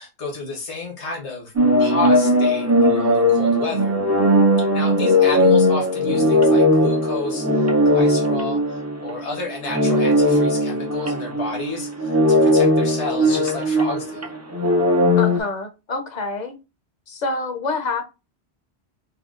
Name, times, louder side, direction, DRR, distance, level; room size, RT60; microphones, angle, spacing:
voice 1, 0.0-1.5 1.8-4.0 4.6-14.3, left 3 dB, 85° left, 1.5 m, -31 dB
sound 1, 1.6-9.3 9.7-15.4, left 1 dB, 25° right, 0.3 m, -18 dB
voice 2, 15.2-16.6 17.1-18.0, left 3 dB, 45° left, 0.7 m, -27 dB
5.4 x 2.3 x 2.4 m
omnidirectional pair, 1.1 m